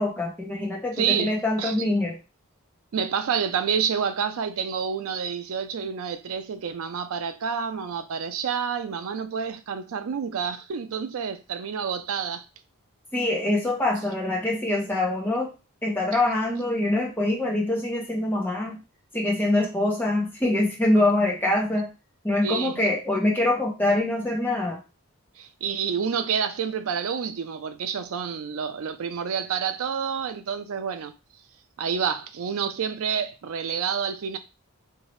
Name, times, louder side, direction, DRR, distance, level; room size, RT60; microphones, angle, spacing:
voice 1, 0.0-2.2 13.1-15.5 15.8-18.8 19.1-21.9 22.2-24.8, left 2 dB, 10° left, 0.9 m, -24 dB
voice 2, 1.0-1.8 2.9-12.4 22.4-22.8 25.4-31.1 31.8-34.4, right 7 dB, 75° right, 0.4 m, -28 dB
2.8 x 2.7 x 3.1 m
head